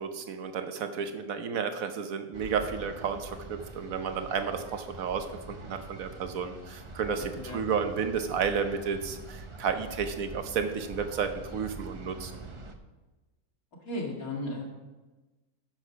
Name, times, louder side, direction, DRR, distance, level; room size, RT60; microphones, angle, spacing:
voice 1, 0.0-12.3, right 6 dB, 65° right, 7 dB, 1.3 m, -32 dB
sound 1, 2.3-12.7, right 3 dB, 35° right, 0.5 m, -44 dB
voice 2, 13.8-14.6, left 1 dB, 65° left, -1 dB, 2.6 m, -35 dB
10.5 x 6.4 x 5.9 m, 1.2 s
omnidirectional pair, 1.6 m